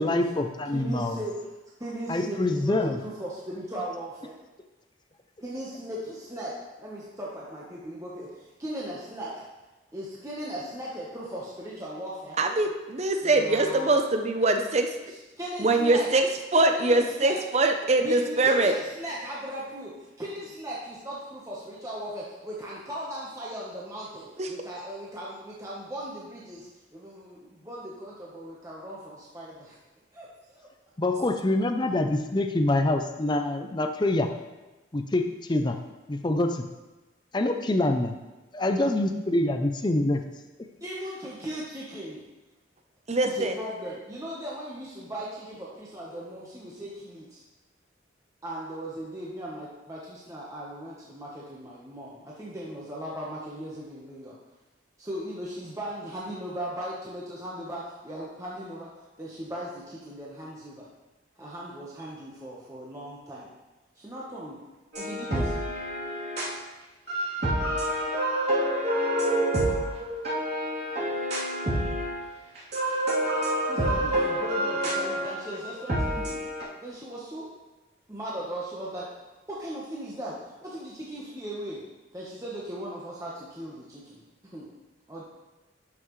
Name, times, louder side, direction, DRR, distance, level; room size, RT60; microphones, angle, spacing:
voice 1, 0.0-1.2 2.1-3.0 31.0-34.3 34.9-35.8 36.1-36.7 37.3-38.2 38.5-40.2 40.6-40.7, left 1 dB, 20° left, 6 dB, 0.5 m, -25 dB
voice 2, 0.7-1.3 1.8-4.3 5.4-9.3 9.9-12.4 13.2-14.0 15.1-16.1 16.7-17.4 18.0-29.8 30.1-30.7 40.8-42.2 43.2-47.4 48.4-54.4 55.0-58.9 59.2-60.9 61.4-63.5 63.9-64.6 65.0-65.5 73.7-76.4 76.8-77.5 78.1-79.1 79.5-81.8 82.1-84.7 85.1-85.2, equal, 15° right, -6 dB, 1.1 m, -38 dB
voice 3, 12.4-15.0 15.6-18.7 24.4-24.5 43.1-43.6, right 2 dB, 35° right, 5 dB, 0.6 m, -23 dB
sound 1, 64.9-66.5 67.1-72.2 72.5-76.6, right 1 dB, 55° right, 3.1 m, -27 dB
12.0 x 5.8 x 3.2 m, 1.1 s
head